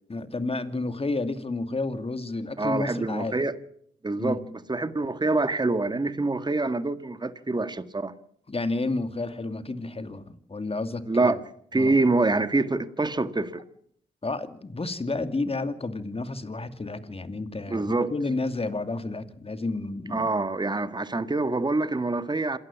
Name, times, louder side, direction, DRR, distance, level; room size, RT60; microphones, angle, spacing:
voice 1, 0.1-3.4 4.2-4.4 8.5-11.3 11.7-11.9 14.2-20.3, left 3 dB, 30° left, 2.6 m, -31 dB
voice 2, 2.6-3.5 4.0-8.1 11.1-11.4 11.7-13.6 17.7-18.1 20.1-22.6, right 3 dB, 20° right, 1.7 m, -26 dB
27.0 x 14.5 x 7.3 m
supercardioid pair, 45°, 20 cm